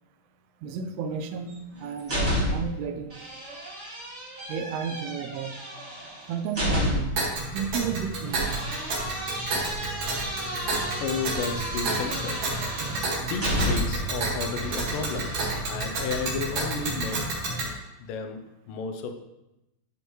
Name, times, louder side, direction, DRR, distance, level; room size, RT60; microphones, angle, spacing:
voice 1, 0.6-1.5 1.8-3.3 4.5-5.5 6.3-7.2 7.5-8.7, right 6 dB, 90° right, 7 dB, 2.6 m, -32 dB
sound 1, 1.5-2.8 3.1-7.3 8.3-14.1 14.6-15.6, equal, 25° right, 1.9 m, -31 dB
Tick, 7.2-17.7, right 2 dB, 55° right, 2.9 m, -30 dB
voice 2, 11.0-12.5 13.2-15.4 15.7-17.4 18.0-19.1, left 5 dB, 75° left, 5 dB, 2.1 m, -33 dB
13.0 x 5.2 x 3.1 m, 0.92 s
omnidirectional pair, 4.6 m